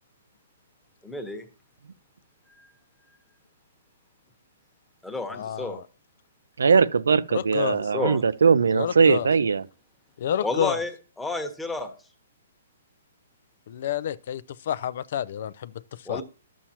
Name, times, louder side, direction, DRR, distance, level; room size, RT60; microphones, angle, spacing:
voice 1, 1.0-1.4 2.6-2.7 5.0-5.8 7.6-8.2 10.4-10.9 11.2-11.9 16.1-16.2, left 2 dB, 5° left, 1.1 m, -31 dB
voice 2, 5.3-5.8 7.3-7.8 8.7-9.3 10.2-10.8 13.7-15.7 16.1-16.2, left 9 dB, 55° left, 0.4 m, -29 dB
voice 3, 6.6-9.6, right 5 dB, 90° right, 0.5 m, -20 dB
11.0 x 7.3 x 2.9 m
hypercardioid pair, 150°, 0 cm